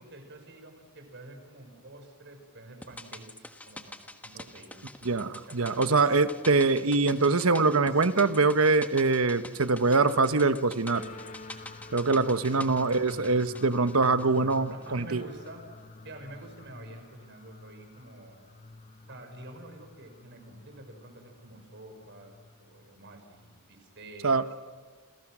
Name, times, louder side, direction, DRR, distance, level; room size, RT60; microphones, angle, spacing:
voice 1, 0.0-4.8 5.2-6.2 12.4-12.6 14.7-15.7 16.0-18.4 19.1-24.4, right 2 dB, 55° right, 6 dB, 5.2 m, -48 dB
sound 1, 2.8-15.2 15.4-15.5, left 1 dB, 5° left, 1.4 m, -47 dB
voice 2, 5.0-11.0 11.9-15.2 24.2-24.4, right 3 dB, 75° right, 11 dB, 1.2 m, -24 dB
sound 2, 10.9-23.6, left 2 dB, 40° left, 1.3 m, -49 dB
29.5 x 28.0 x 6.3 m, 1.5 s
head